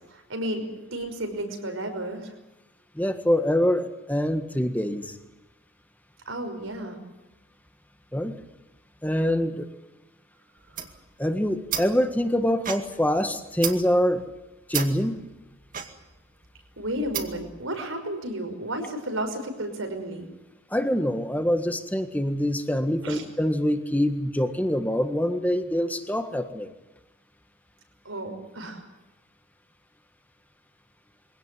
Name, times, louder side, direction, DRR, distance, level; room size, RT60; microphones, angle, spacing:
voice 1, 0.1-2.3 6.3-7.0 16.8-20.3 23.0-23.2 28.0-28.8, right 1 dB, 85° right, 5 dB, 5.6 m, -32 dB
voice 2, 2.9-5.2 8.1-8.4 9.0-9.7 11.2-14.2 14.7-15.3 20.7-26.7, equal, 10° left, 8 dB, 1.6 m, -25 dB
sound 1, 10.6-17.6, right 8 dB, 40° right, 2.2 m, -35 dB
24.0 x 17.5 x 9.5 m, 1.0 s
head